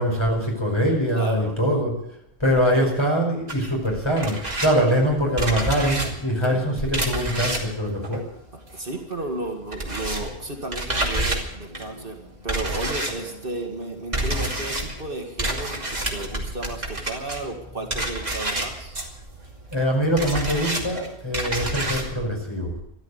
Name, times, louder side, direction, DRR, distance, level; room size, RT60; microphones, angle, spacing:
voice 1, 0.0-1.9 2.4-8.2 19.7-22.7, equal, 25° left, 0 dB, 5.2 m, -23 dB
voice 2, 1.1-1.6 2.7-3.0 6.4-6.6 8.7-19.0, right 2 dB, 55° right, 2 dB, 2.2 m, -33 dB
sound 1, 3.5-9.0 9.3-22.1, right 1 dB, 40° right, 2.8 m, -29 dB
13.5 x 12.5 x 8.1 m, 0.78 s
omnidirectional pair, 1.1 m